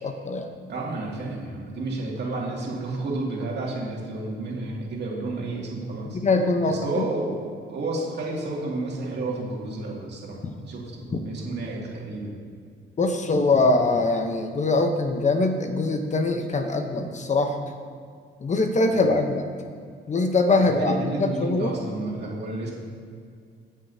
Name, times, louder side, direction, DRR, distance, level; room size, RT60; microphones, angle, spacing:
voice 1, 0.0-0.5 6.1-7.1 10.4-10.5 11.1-11.2 13.0-17.7 18.4-19.5 20.1-20.9 21.2-21.7, left 3 dB, 35° left, 5 dB, 0.9 m, -23 dB
voice 2, 0.7-6.2 6.7-12.3 20.6-22.7, right 2 dB, 60° right, -3 dB, 2.4 m, -31 dB
15.5 x 7.2 x 2.8 m, 2.2 s
cardioid pair, 90°, 20 cm